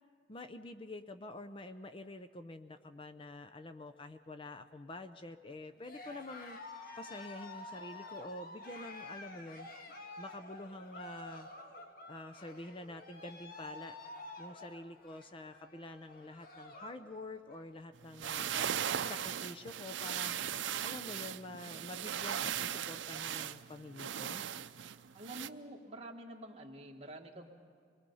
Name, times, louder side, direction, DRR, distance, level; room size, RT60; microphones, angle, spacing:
voice 1, 0.3-6.6 7.0-9.7 10.2-11.5 12.1-14.0 14.4-18.8 19.0-24.4, left 2 dB, 30° left, 9 dB, 0.6 m, -47 dB
Cheering, 5.8-17.1 17.4-17.8 18.2-18.3 18.5-19.3, left 2 dB, 55° left, 1.5 m, -50 dB
sound 1, 18.0-25.5, right 9 dB, 90° right, 0.5 m, -38 dB
voice 2, 25.1-27.5, right 1 dB, 35° right, 1 dB, 1.7 m, -48 dB
24.5 x 21.0 x 5.5 m, 2.3 s
head